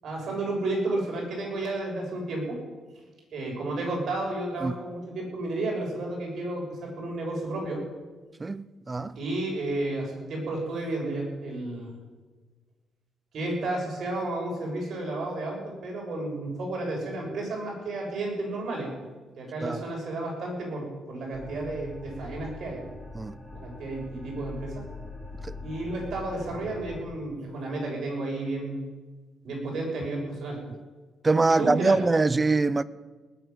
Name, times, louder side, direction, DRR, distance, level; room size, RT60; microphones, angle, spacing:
voice 1, 0.0-2.6 3.3-7.8 9.2-11.9 13.3-18.9 19.4-22.8 23.5-24.9 25.6-28.8 29.4-30.6 31.5-32.0, right 2 dB, 60° right, 6.9 m, -32 dB
voice 2, 8.4-9.2 19.6-19.8 23.1-23.4 25.4-25.6 31.2-32.8, right 3 dB, 25° right, 0.6 m, -24 dB
sound 1, 21.3-27.0, left 3 dB, 15° left, 3.1 m, -42 dB
19.0 x 7.6 x 9.5 m
cardioid pair, 90°, 0 cm